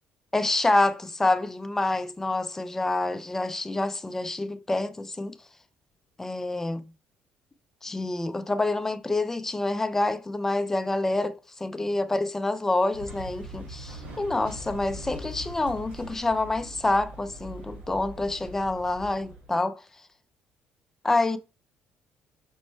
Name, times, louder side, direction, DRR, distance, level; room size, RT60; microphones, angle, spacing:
voice 1, 0.3-5.3 6.2-6.8 7.8-19.8 21.0-21.4, left 2 dB, 15° left, 0.4 m, -27 dB
sound 1, 12.9-19.5, equal, 80° right, 2.0 m, -42 dB
5.3 x 2.1 x 4.3 m
cardioid pair, 115°, 3 cm